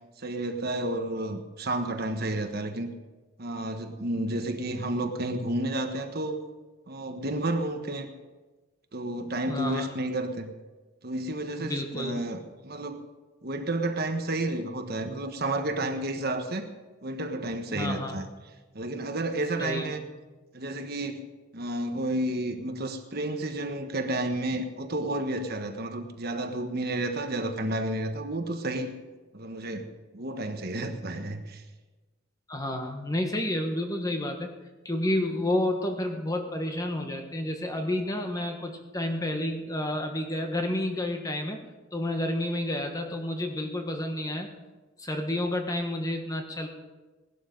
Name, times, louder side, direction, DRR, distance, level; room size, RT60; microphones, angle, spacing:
voice 1, 0.2-2.9 3.4-6.4 6.9-8.1 8.9-10.5 11.0-13.1 13.4-16.7 17.0-18.3 18.7-20.0 20.5-29.0 29.3-31.6, right 1 dB, 50° right, 6 dB, 1.3 m, -31 dB
voice 2, 9.5-9.9 11.6-12.2 17.7-18.2 19.6-19.9 32.5-34.5 34.8-41.6 41.9-44.5 45.0-46.7, left 1 dB, 15° left, 4 dB, 1.4 m, -30 dB
18.5 x 12.0 x 5.3 m, 1.2 s
head